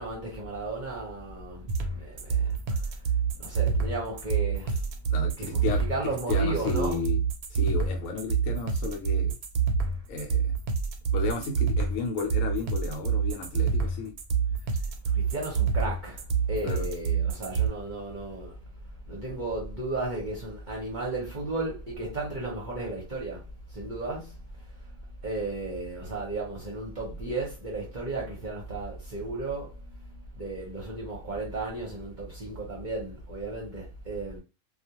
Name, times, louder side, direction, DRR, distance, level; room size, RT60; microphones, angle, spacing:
voice 1, 0.0-3.1 3.4-4.8 5.4-5.6 5.9-7.1 15.1-18.6 19.1-24.4 25.2-34.4, right 2 dB, 40° right, 0.8 m, -34 dB
sound 1, 1.7-17.7, right 6 dB, 90° right, 1.1 m, -27 dB
voice 2, 5.1-7.2 7.5-9.4 10.1-10.5 11.1-14.1 16.6-16.9, left 4 dB, 75° left, 1.0 m, -33 dB
2.4 x 2.3 x 2.8 m
omnidirectional pair, 1.5 m